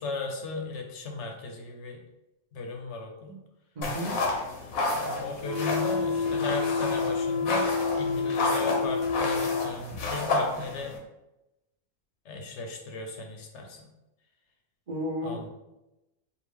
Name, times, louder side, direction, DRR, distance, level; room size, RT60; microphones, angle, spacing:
voice 1, 0.0-2.0 2.5-3.4 4.8-10.9 12.2-13.9 15.2-15.5, left 3 dB, 60° left, 2 dB, 1.0 m, -36 dB
voice 2, 3.7-4.1 14.9-15.5, equal, 35° right, -5 dB, 0.8 m, -33 dB
sound 1, 3.8-11.0, left 2 dB, 85° left, 1.2 m, -31 dB
sound 2, 5.4-9.7, left 4 dB, 75° right, 1.4 m, -28 dB
4.7 x 2.5 x 3.4 m, 0.94 s
omnidirectional pair, 1.4 m